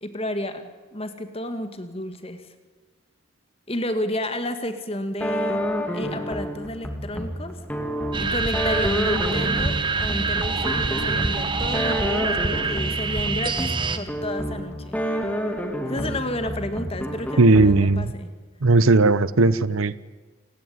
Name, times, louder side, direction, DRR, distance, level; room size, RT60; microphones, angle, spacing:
voice 1, 0.0-2.4 3.7-5.6 5.9-7.6 8.2-15.0 15.8-18.3, left 1 dB, 30° left, 9 dB, 2.1 m, -31 dB
sound 1, 5.2-18.1, equal, 5° left, 2.6 m, -29 dB
sound 2, 8.1-14.0, right 4 dB, 25° right, 1.4 m, -25 dB
voice 2, 17.4-18.1 18.6-20.0, right 3 dB, 80° right, 17 dB, 0.9 m, -17 dB
28.5 x 19.0 x 9.5 m, 1.4 s
head